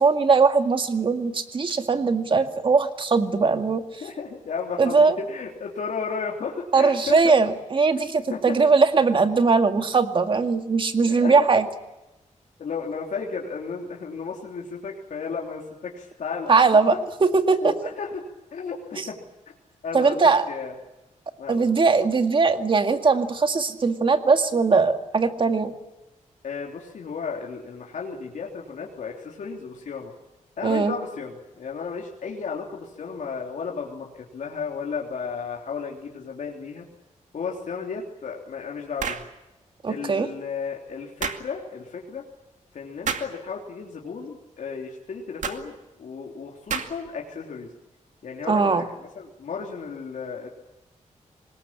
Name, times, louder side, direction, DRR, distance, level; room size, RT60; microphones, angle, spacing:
voice 1, 0.0-3.8 4.8-5.2 6.7-11.7 16.5-17.0 17.2-17.7 19.0-19.1 19.9-20.4 21.5-25.7 30.6-30.9 39.8-40.3 48.5-48.8, right 4 dB, 40° right, 7 dB, 2.0 m, -20 dB
voice 2, 4.0-7.2 8.3-8.6 11.1-11.3 12.6-16.5 17.6-18.2 18.5-19.2 19.8-20.7 21.4-21.7 26.4-30.1 30.6-36.8 37.3-39.2 39.9-42.2 42.7-47.7 48.2-50.5, left 5 dB, 75° left, -1 dB, 3.4 m, -34 dB
sound 1, 39.0-39.3 41.2-41.4 43.0-43.3 45.4-45.6 46.7-47.1, right 6 dB, 70° right, 2.3 m, -29 dB
25.0 x 20.5 x 8.8 m, 1.0 s
wide cardioid pair, 155°, 13 cm